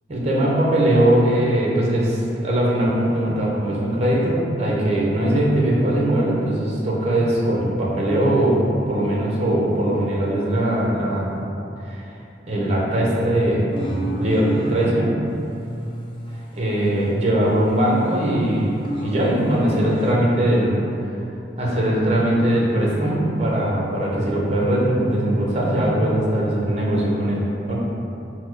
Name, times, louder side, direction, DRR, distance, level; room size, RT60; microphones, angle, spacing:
voice 1, 0.1-11.4 11.8-12.0 12.5-15.2 16.6-21.2 21.6-27.8, right 1 dB, 35° right, -4 dB, 0.6 m, -20 dB
sound 1, 13.7-15.0 15.5-17.2 17.5-20.2, equal, 25° left, 0.4 m, -32 dB
4.2 x 2.1 x 4.5 m, 2.8 s
head